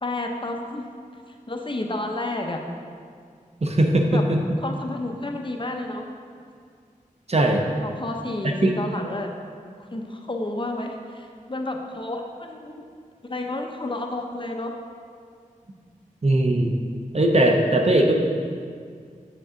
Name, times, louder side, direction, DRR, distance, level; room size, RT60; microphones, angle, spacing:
voice 1, 0.0-0.8 1.5-2.6 4.1-4.2 4.6-6.1 7.8-9.3 9.9-12.7 13.2-14.8, left 2 dB, 35° left, 2 dB, 0.8 m, -30 dB
voice 2, 3.6-4.4 7.3-7.6 8.4-8.7 16.2-16.7 17.1-18.1, right 1 dB, 50° right, 2 dB, 0.8 m, -19 dB
7.4 x 6.6 x 3.9 m, 2.1 s
wide cardioid pair, 65°, 14 cm